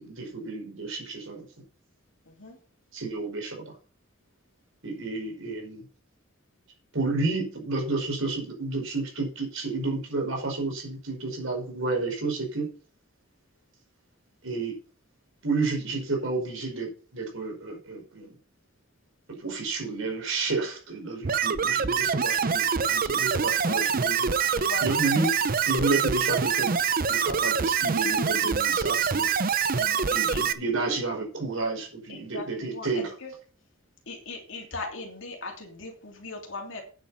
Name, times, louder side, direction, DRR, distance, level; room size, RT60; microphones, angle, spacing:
voice 1, 0.0-1.5 2.9-3.7 4.8-5.9 6.9-12.7 14.4-14.8 15.4-18.3 19.4-26.7 27.1-29.3 30.1-33.1, right 3 dB, 70° right, 1 dB, 5.1 m, -31 dB
voice 2, 2.3-2.6 23.6-23.8 24.5-25.1 29.7-30.4 32.1-33.3 34.1-36.8, left 3 dB, 65° left, 2 dB, 3.0 m, -39 dB
sound 1, 21.2-30.5, right 6 dB, 45° right, 0.7 m, -25 dB
9.3 x 8.5 x 5.7 m, 0.40 s
head